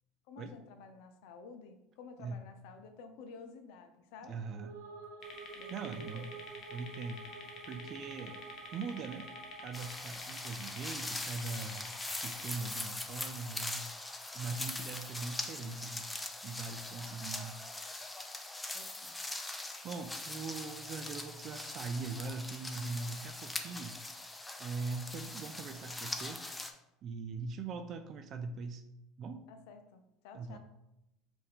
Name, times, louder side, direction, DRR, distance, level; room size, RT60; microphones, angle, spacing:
voice 1, 0.3-4.4 5.5-6.3 14.9-15.1 18.7-19.1 29.5-30.6, left 4 dB, 70° left, 7 dB, 0.6 m, -52 dB
voice 2, 4.3-4.7 5.7-6.3 6.7-7.2 7.7-8.4 8.7-9.3 9.6-13.9 14.3-16.1 16.4-17.6 19.5-24.0 24.6-26.4 27.0-28.8 29.2-29.5 30.3-30.6, right 4 dB, 45° right, 8 dB, 0.4 m, -41 dB
sound 1, 4.4-10.2, right 3 dB, 85° right, 0.8 m, -49 dB
sound 2, 5.2-12.5, left 4 dB, 45° left, 1.0 m, -49 dB
sound 3, 9.7-26.7, left 2 dB, 10° left, 0.6 m, -42 dB
5.3 x 2.7 x 3.5 m, 0.88 s
supercardioid pair, 90°, 0 cm